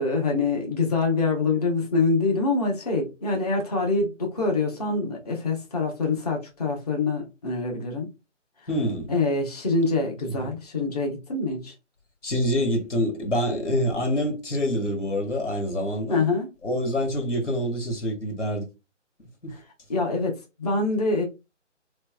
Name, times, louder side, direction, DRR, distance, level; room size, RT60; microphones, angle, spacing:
voice 1, 0.0-8.1 9.1-11.7 16.1-16.5 19.5-19.6 19.9-21.2, left 3 dB, 30° left, 1.1 m, -25 dB
voice 2, 8.7-9.1 10.3-10.4 12.2-16.2 16.6-18.7 19.4-19.5, equal, 70° left, 1.7 m, -26 dB
3.3 x 3.3 x 2.2 m
figure-of-eight pair, 155°, 37 cm